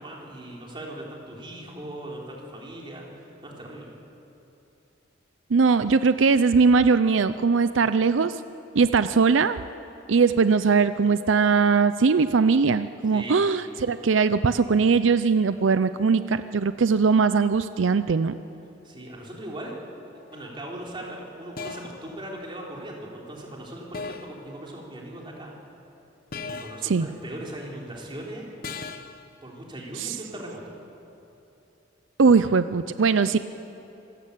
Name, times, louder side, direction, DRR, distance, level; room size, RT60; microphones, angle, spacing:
voice 1, 0.0-3.9 13.1-13.4 18.8-19.7 20.3-25.5 26.4-28.5 29.4-30.6, right 1 dB, 25° right, -2 dB, 3.9 m, -39 dB
voice 2, 5.5-8.4 8.7-9.6 10.1-18.4 26.8-27.1 30.0-30.2 32.2-33.4, right 5 dB, 85° right, 12 dB, 0.5 m, -20 dB
sound 1, 20.3-20.6 21.6-22.1 23.9-24.4 26.3-26.9 28.6-29.2, left 4 dB, 50° left, 1.0 m, -37 dB
26.0 x 15.0 x 8.5 m, 3.0 s
head